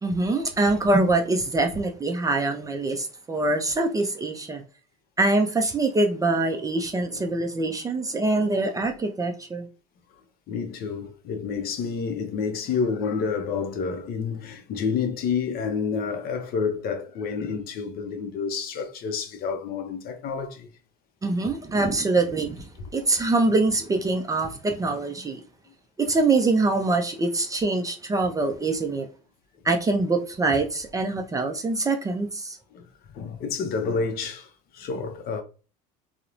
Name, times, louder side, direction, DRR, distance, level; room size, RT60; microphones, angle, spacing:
voice 1, 0.0-4.6 5.2-9.7 21.2-25.4 26.0-29.1 29.6-32.6, right 2 dB, 15° right, 0.4 m, -24 dB
voice 2, 10.5-20.7 32.7-32.8 33.1-35.4, left 5 dB, 50° left, 0.5 m, -29 dB
2.8 x 2.0 x 2.4 m
supercardioid pair, 95°, 20 cm